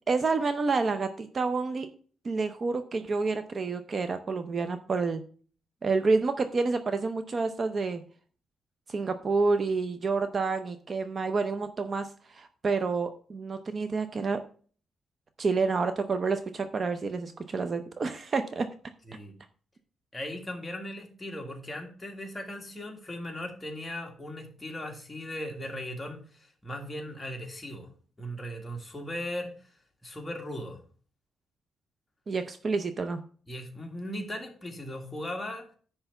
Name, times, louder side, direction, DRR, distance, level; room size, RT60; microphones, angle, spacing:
voice 1, 0.1-1.9 2.2-5.2 5.8-8.0 8.9-14.4 15.4-18.7 32.3-33.2, right 4 dB, 35° right, 8 dB, 0.6 m, -29 dB
voice 2, 20.1-27.9 28.2-29.5 30.0-30.8 33.5-35.7, left 1 dB, 15° left, 2 dB, 1.8 m, -38 dB
10.0 x 3.4 x 6.8 m, 0.43 s
cardioid pair, 130°, 0 cm